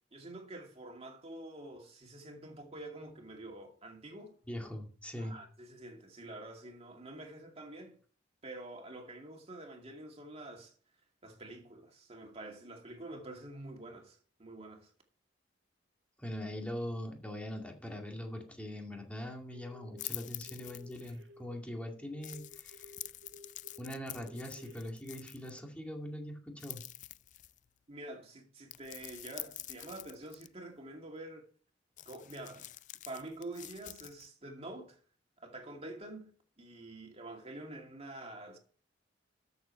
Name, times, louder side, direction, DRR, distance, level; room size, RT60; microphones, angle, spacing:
voice 1, 0.1-4.4 5.2-8.0 8.4-10.7 11.2-14.9 27.9-31.5 32.0-32.7 33.1-35.0 35.4-38.6, right 2 dB, 35° right, 2.4 m, -47 dB
voice 2, 4.5-5.3 16.2-22.9 23.8-26.8, equal, 5° left, 2.3 m, -42 dB
sound 1, 19.5-20.1 20.5-24.8, left 1 dB, 70° right, 1.5 m, -55 dB
sound 2, 20.0-21.2 22.2-25.6 26.6-27.7 28.7-30.5 32.0-34.3, left 14 dB, 45° left, 0.4 m, -47 dB
13.0 x 7.0 x 4.5 m
head